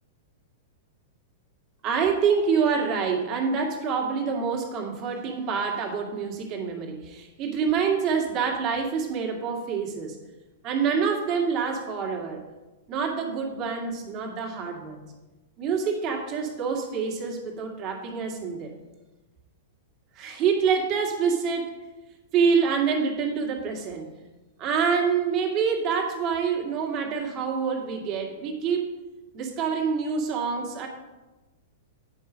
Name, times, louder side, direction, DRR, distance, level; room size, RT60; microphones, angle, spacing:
voice 1, 1.8-10.2 10.6-12.4 12.9-15.0 15.6-18.7 20.2-21.7 22.3-24.1 24.6-29.0 29.3-30.9, right 6 dB, 35° right, 0 dB, 2.2 m, -26 dB
9.9 x 5.5 x 5.1 m, 1.1 s
figure-of-eight pair, 100°, 0 cm